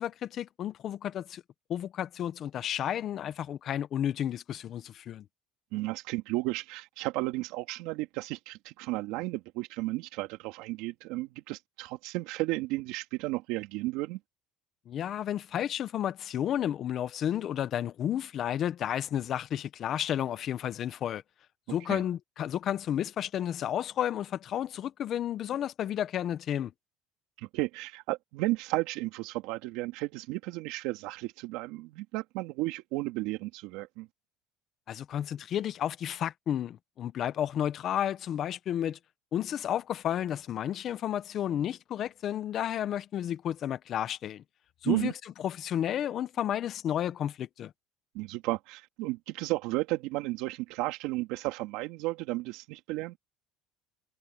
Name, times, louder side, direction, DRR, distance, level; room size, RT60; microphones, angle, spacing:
voice 1, 0.0-1.4 1.7-5.2 14.9-21.2 21.7-26.7 34.9-39.0 39.3-44.4 44.8-45.1 45.4-47.7, left 10 dB, 40° left, 1.0 m, -32 dB
voice 2, 5.7-14.2 21.9-22.0 27.4-34.1 44.9-45.1 48.1-53.2, right 20 dB, 70° right, 2.8 m, -33 dB
cardioid pair, 135°, 0 cm